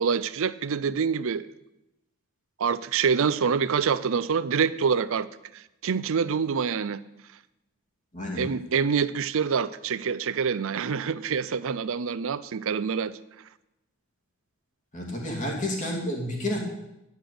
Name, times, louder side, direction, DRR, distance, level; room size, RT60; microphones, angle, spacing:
voice 1, 0.0-1.5 2.6-5.3 5.5-7.0 8.4-13.2, right 6 dB, 60° right, 16 dB, 0.5 m, -26 dB
voice 2, 14.9-16.6, left 1 dB, 35° left, -1 dB, 2.7 m, -30 dB
10.5 x 6.6 x 7.8 m, 0.92 s
head